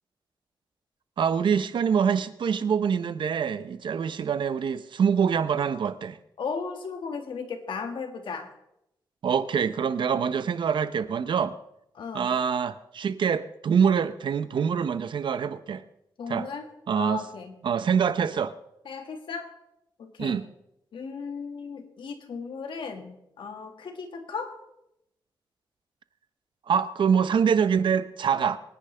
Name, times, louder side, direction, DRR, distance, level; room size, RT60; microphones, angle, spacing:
voice 1, 1.2-6.2 9.2-11.6 12.1-15.8 16.3-16.5 16.9-17.2 17.6-18.5 20.2-20.4 26.7-28.6, right 7 dB, 75° right, 12 dB, 0.7 m, -25 dB
voice 2, 6.4-8.5 11.9-12.3 16.2-16.7 16.9-17.6 18.9-19.5 20.0-20.4 20.9-24.6, left 5 dB, 85° left, 5 dB, 1.9 m, -36 dB
25.0 x 10.0 x 3.4 m, 0.83 s
wide cardioid pair, 140°, 8 cm